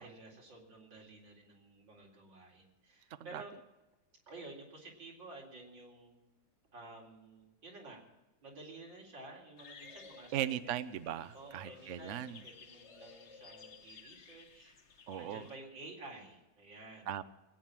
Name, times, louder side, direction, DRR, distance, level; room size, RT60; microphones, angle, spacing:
voice 1, 0.0-3.5 4.3-6.2 6.7-8.1 8.4-10.7 11.3-17.1, right 2 dB, 90° right, -1 dB, 4.5 m, -52 dB
sound 1, 9.6-15.6, left 5 dB, 45° left, 1.3 m, -56 dB
voice 2, 10.3-12.4 15.1-15.4 17.1-17.2, right 11 dB, 60° right, 13 dB, 0.8 m, -38 dB
20.0 x 9.4 x 7.4 m, 1.0 s
omnidirectional pair, 2.0 m